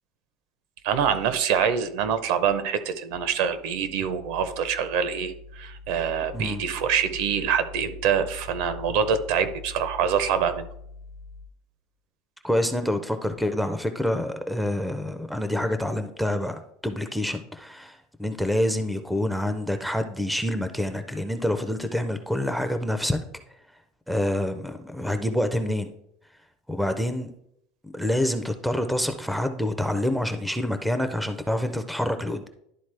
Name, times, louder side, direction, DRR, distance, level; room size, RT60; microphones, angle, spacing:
voice 1, 0.8-10.7, right 7 dB, 60° right, 12 dB, 0.7 m, -25 dB
voice 2, 12.4-23.2 24.1-25.9 26.7-27.3 27.8-32.5, left 1 dB, ahead, 8 dB, 0.4 m, -27 dB
11.5 x 3.9 x 3.3 m, 0.74 s
cardioid pair, 165°, 0 cm